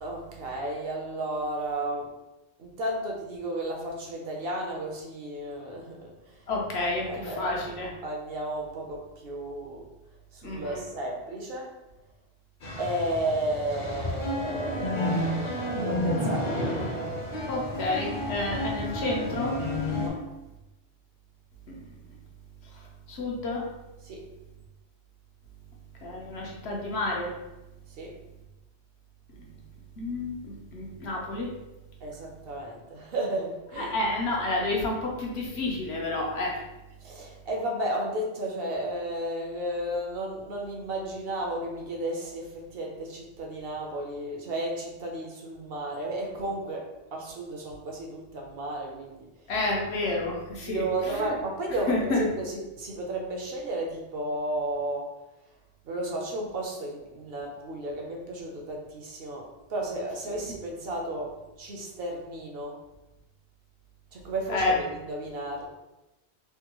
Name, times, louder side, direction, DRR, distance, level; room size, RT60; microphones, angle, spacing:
voice 1, 0.0-2.1 2.6-6.1 6.8-7.5 8.0-9.8 10.3-11.7 12.8-16.6 20.0-20.2 24.0-24.3 28.0-28.1 32.0-33.9 37.0-49.3 50.6-55.2 55.8-62.8 64.1-65.6, right 1 dB, 65° right, 0 dB, 0.8 m, -33 dB
voice 2, 6.5-7.9 10.4-10.8 17.5-19.5 21.7-21.8 22.7-23.7 26.0-27.3 29.4-29.5 30.0-31.5 33.8-36.6 49.5-51.4 51.9-52.3 60.3-60.4 64.5-64.8, left 2 dB, 70° left, -2 dB, 1.0 m, -30 dB
sound 1, 12.6-20.1, left 1 dB, 50° left, 0.6 m, -30 dB
3.5 x 2.2 x 2.9 m, 1.0 s
omnidirectional pair, 1.1 m